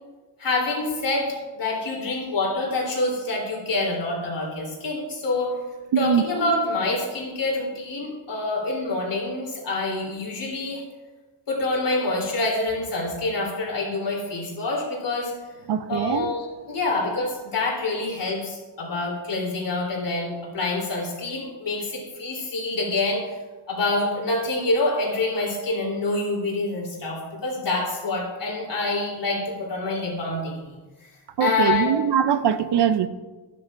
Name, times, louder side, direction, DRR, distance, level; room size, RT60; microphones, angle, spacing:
voice 1, 0.4-5.5 6.0-10.8 11.5-15.3 15.9-23.2 23.7-30.8 31.4-31.9, left 2 dB, 70° left, 3.5 m, -26 dB
voice 2, 5.9-6.2 15.7-16.3 31.4-33.1, right 9 dB, 65° right, 0.6 m, -22 dB
12.5 x 10.0 x 2.5 m
wide cardioid pair, 100°, 43 cm